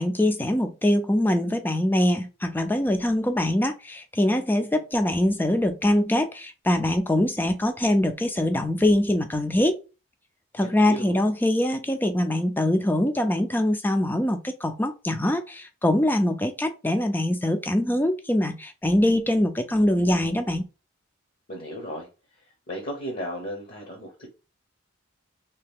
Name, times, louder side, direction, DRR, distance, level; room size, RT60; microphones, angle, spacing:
voice 1, 0.0-9.8 10.5-20.6, left 1 dB, 10° left, 0.3 m, -23 dB
voice 2, 10.6-11.2 21.5-22.1 22.7-24.3, equal, 45° left, 0.8 m, -35 dB
3.2 x 2.8 x 3.5 m
head